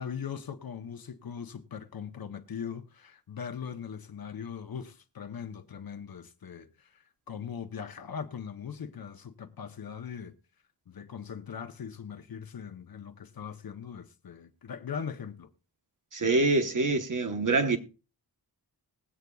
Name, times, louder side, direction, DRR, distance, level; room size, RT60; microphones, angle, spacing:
voice 1, 0.0-10.4 10.9-15.5, left 7 dB, 60° left, 0.9 m, -40 dB
voice 2, 16.1-17.8, right 3 dB, 50° right, 1.1 m, -25 dB
20.5 x 8.0 x 2.3 m
wide cardioid pair, 130°, 41 cm